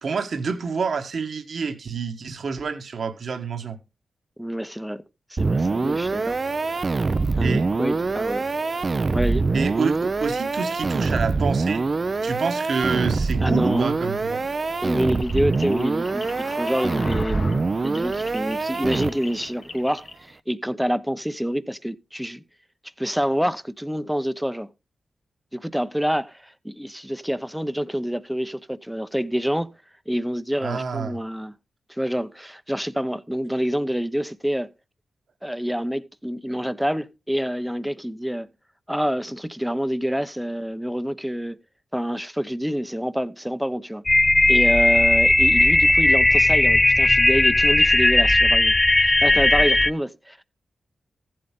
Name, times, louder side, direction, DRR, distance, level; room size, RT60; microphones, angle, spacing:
voice 1, 0.0-3.8 7.4-7.7 9.5-11.8 12.2-14.4 30.6-31.2, right 5 dB, 65° right, 1.4 m, -28 dB
voice 2, 4.4-5.0 5.3-6.4 7.4-8.5 9.1-9.5 13.4-13.9 14.8-22.4 23.0-24.7 25.5-29.7 30.1-31.5 31.9-34.7 35.4-38.5 38.9-41.6 41.9-44.0 44.5-50.4, equal, 5° right, 0.8 m, -27 dB
sound 1, 5.4-19.4, right 3 dB, 45° right, 0.6 m, -24 dB
sound 2, 15.1-20.1, left 3 dB, 60° left, 2.2 m, -39 dB
sound 3, 44.1-49.9, left 2 dB, 25° left, 0.5 m, -17 dB
14.5 x 7.8 x 3.7 m
cardioid pair, 50°, 0 cm